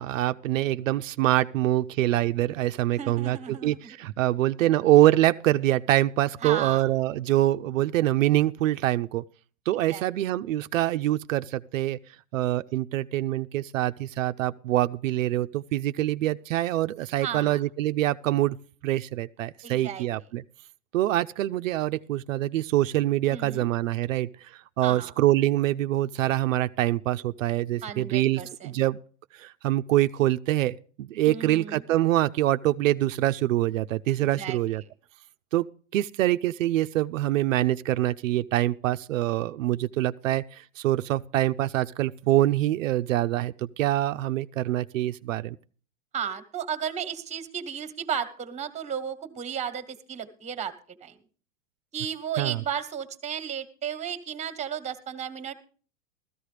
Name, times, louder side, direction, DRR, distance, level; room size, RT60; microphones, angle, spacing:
voice 1, 0.0-9.2 9.7-12.0 12.3-18.6 18.8-20.4 20.9-29.0 29.3-34.8 35.5-35.7 35.9-45.6 52.4-52.6, right 14 dB, 85° right, 0.5 m, -25 dB
voice 2, 2.9-3.8 6.4-6.9 9.9-10.1 17.2-17.6 19.6-20.0 23.3-23.7 24.8-25.1 27.8-28.7 31.3-31.8 34.3-34.6 46.1-50.7 51.0-51.2 51.9-55.5, right 8 dB, 20° right, 1.2 m, -34 dB
15.0 x 13.5 x 3.3 m
hypercardioid pair, 120°, 38 cm